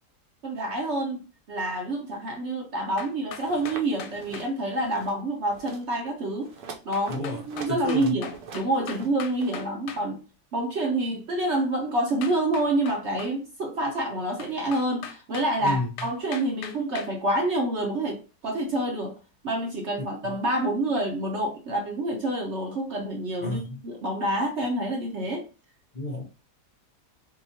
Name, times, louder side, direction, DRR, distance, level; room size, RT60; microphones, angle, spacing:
voice 1, 0.4-1.2 1.5-6.5 6.8-10.2 10.5-19.2 19.4-25.5, right 1 dB, 55° right, 1 dB, 0.8 m, -27 dB
sound 1, 3.0-4.5 6.9-10.0 12.2-13.3 14.4-17.1, left 8 dB, 90° left, 1.2 m, -40 dB
sound 2, 3.4-3.8 4.1-4.5 4.8-5.2 5.5-5.8 6.4-9.6, right 5 dB, 70° right, 1.2 m, -43 dB
voice 2, 7.1-7.4 7.7-8.1 15.6-15.9 23.4-23.8 25.9-26.3, left 2 dB, 55° left, 0 dB, 0.4 m, -30 dB
3.9 x 2.8 x 2.7 m, 0.33 s
omnidirectional pair, 1.8 m